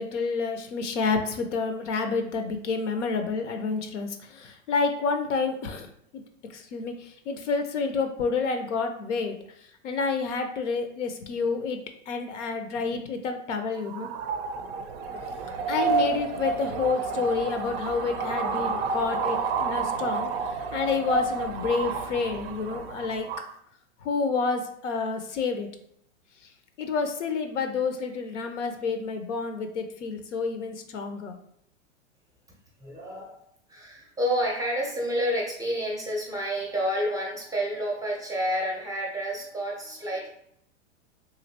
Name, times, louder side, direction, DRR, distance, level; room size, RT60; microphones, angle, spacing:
voice 1, 0.0-6.2 6.5-9.4 9.8-11.8 12.1-14.1 15.7-20.3 20.7-23.3 24.0-25.7 26.8-31.4, left 4 dB, 80° left, 7 dB, 0.7 m, -29 dB
sound 1, 13.8-23.5, right 4 dB, 55° right, 0.4 m, -30 dB
voice 2, 32.8-33.4 33.7-40.3, equal, 10° right, -1 dB, 0.5 m, -29 dB
3.1 x 2.6 x 2.7 m, 0.71 s
hypercardioid pair, 120°, 36 cm